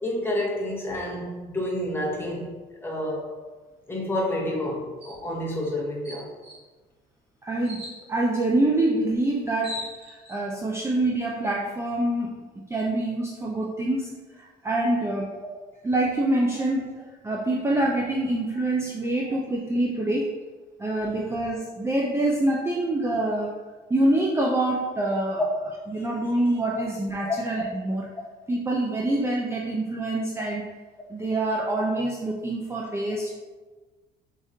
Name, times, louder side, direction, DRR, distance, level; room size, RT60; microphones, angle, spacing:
voice 1, 0.0-2.5 2.8-3.3 3.9-6.3 19.2-19.3 25.4-25.5, left 1 dB, 15° left, -3 dB, 1.1 m, -29 dB
sound 1, 5.0-5.2 5.6-5.7 6.0-6.6 7.6-8.0 9.1-9.2 9.4-10.4, left 1 dB, 35° right, 1.5 m, -38 dB
voice 2, 7.4-9.8 10.1-12.4 12.7-15.3 15.8-20.3 20.8-23.5 23.9-25.4 25.9-28.1 28.5-30.7 31.1-33.3, right 1 dB, 15° right, -3 dB, 0.5 m, -26 dB
4.6 x 3.5 x 2.7 m, 1.3 s
cardioid pair, 110°, 17 cm